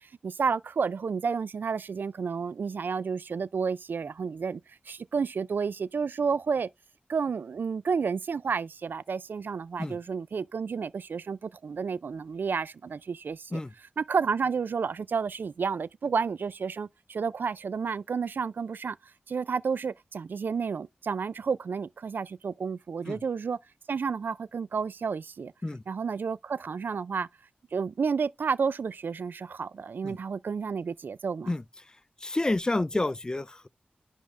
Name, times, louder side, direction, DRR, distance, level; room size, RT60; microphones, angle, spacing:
voice 1, 0.0-6.7 7.1-13.6 14.0-19.0 19.3-23.6 23.9-25.5 25.9-27.3 27.7-31.5, right 5 dB, 75° right, 0.4 m, -31 dB
voice 2, 32.2-33.7, left 2 dB, 20° left, 0.5 m, -29 dB
10.5 x 3.6 x 3.3 m
wide cardioid pair, 95°, 3 cm